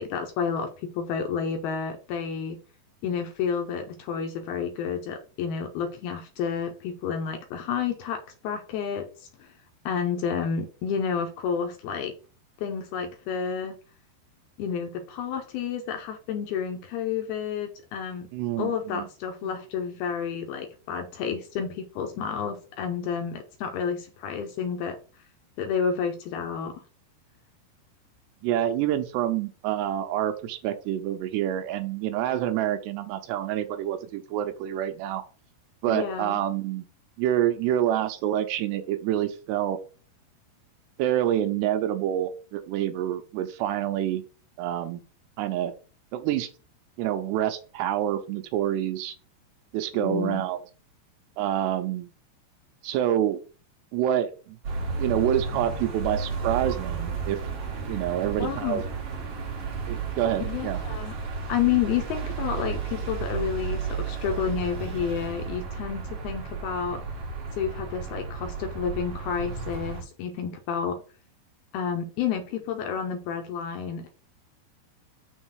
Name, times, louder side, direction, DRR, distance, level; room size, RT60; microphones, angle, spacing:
voice 1, 0.0-2.6 3.0-9.5 9.9-12.1 12.6-13.7 14.6-18.3 18.6-25.0 25.6-26.8 35.9-36.4 49.9-50.4 58.4-58.8 60.5-61.1 61.5-67.0 67.6-71.0 71.7-74.1, left 7 dB, 80° left, 5 dB, 2.4 m, -30 dB
voice 2, 18.3-19.1 28.4-35.2 35.8-36.9 37.2-39.8 41.0-44.2 44.6-45.0 45.4-45.7 46.1-46.5 47.0-49.1 49.7-50.6 51.4-52.1 52.8-53.4 53.9-54.6 55.0-57.4 57.9-58.8 59.9-60.8, right 11 dB, 80° right, 9 dB, 2.7 m, -27 dB
sound 1, 54.6-70.0, right 5 dB, 50° right, 2.0 m, -33 dB
6.4 x 3.9 x 6.3 m, 0.37 s
omnidirectional pair, 5.1 m